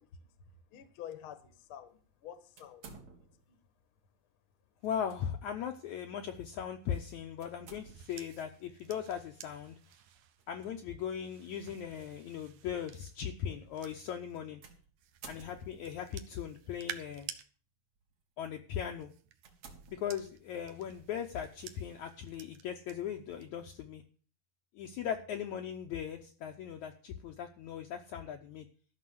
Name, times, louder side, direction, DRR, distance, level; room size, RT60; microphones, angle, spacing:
voice 1, 0.0-3.7, left 9 dB, 55° left, 10 dB, 1.6 m, -50 dB
sound 1, 2.6-3.6 4.8-5.2 5.7-5.8 7.4-8.3 10.4-10.7 11.5-11.6 14.6-16.0 16.9-17.4 18.0-18.2 18.7-18.8 19.4-20.6, right 4 dB, 50° right, 3.0 m, -54 dB
voice 2, 4.8-9.8 10.5-14.6 15.3-17.3 18.4-19.1 19.9-24.0 24.8-28.7, left 8 dB, 70° left, 4 dB, 1.9 m, -39 dB
sound 2, 6.8-14.4 15.0-17.4 18.7-22.9 23.3-23.7, right 9 dB, 70° right, 1.6 m, -52 dB
13.5 x 6.1 x 7.8 m, 0.40 s
omnidirectional pair, 4.2 m